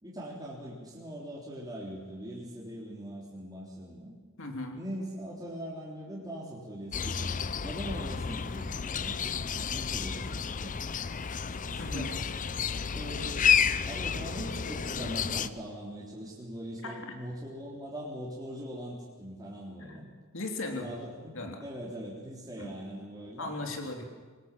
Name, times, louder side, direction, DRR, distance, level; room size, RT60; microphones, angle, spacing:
voice 1, 0.0-4.1 4.7-7.3 7.6-10.7 11.7-12.1 12.9-13.5 13.9-20.1 20.7-23.5, equal, 20° right, -5 dB, 3.5 m, -41 dB
voice 2, 4.4-4.8 11.8-12.1 16.8-17.2 19.8-20.9 21.3-21.6 22.6-22.7 23.4-24.0, left 2 dB, 65° left, 3 dB, 3.3 m, -38 dB
sound 1, 6.9-15.5, left 7 dB, 35° left, 0.6 m, -31 dB
24.0 x 19.5 x 7.6 m, 1.4 s
head